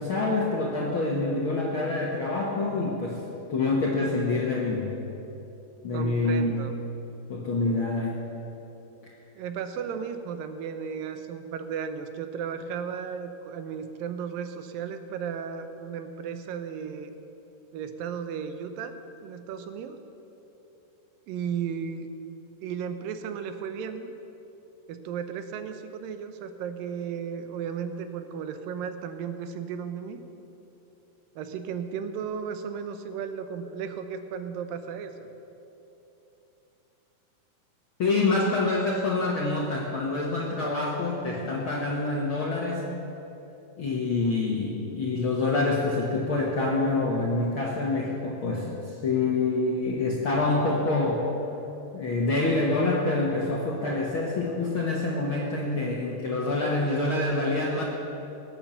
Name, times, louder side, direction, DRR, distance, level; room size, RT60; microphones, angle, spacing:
voice 1, 0.0-3.2 3.5-5.0 5.8-6.7 7.3-8.2 9.0-9.1 38.0-42.9 43.8-51.3 51.9-57.8, left 2 dB, 60° left, -2 dB, 1.4 m, -26 dB
voice 2, 5.9-6.8 9.4-17.1 17.7-20.0 21.3-22.1 22.6-24.1 24.9-30.2 31.4-35.3, right 7 dB, 80° right, 8 dB, 2.5 m, -35 dB
18.0 x 8.9 x 6.9 m, 3.0 s
omnidirectional pair, 4.1 m